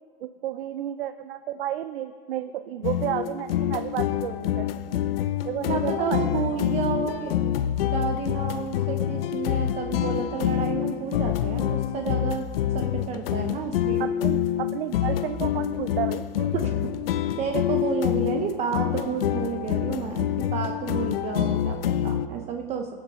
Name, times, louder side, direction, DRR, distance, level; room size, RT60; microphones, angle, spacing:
voice 1, 0.2-4.7 5.4-6.2 14.0-16.2, right 11 dB, 80° right, 10 dB, 0.6 m, -31 dB
sound 1, 2.8-22.3, left 11 dB, 75° left, 0.7 m, -27 dB
voice 2, 5.7-7.5 7.9-12.4 12.7-14.1 16.5-16.7 17.4-21.8 22.0-22.9, right 6 dB, 25° right, 5 dB, 0.6 m, -31 dB
21.5 x 7.2 x 5.4 m, 2.2 s
supercardioid pair, 150°, 29 cm